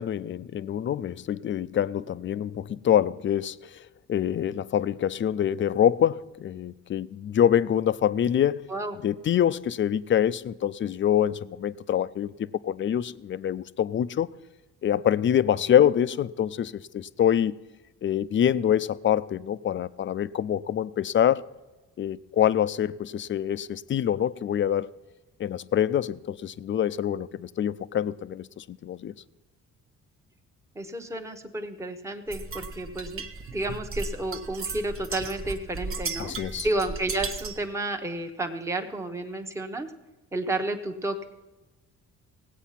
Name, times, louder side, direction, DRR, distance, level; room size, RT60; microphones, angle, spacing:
voice 1, 0.0-3.8 4.1-8.7 9.0-14.3 14.8-17.6 18.0-21.4 22.0-24.9 25.4-29.1 36.2-36.7, left 10 dB, 40° left, 0.4 m, -25 dB
voice 2, 30.8-33.2 33.5-36.3 36.6-39.9 40.3-41.3, right 2 dB, 10° right, 0.9 m, -31 dB
sound 1, 32.3-37.7, right 4 dB, 45° right, 1.0 m, -36 dB
17.0 x 8.2 x 5.7 m
cardioid pair, 90°, 30 cm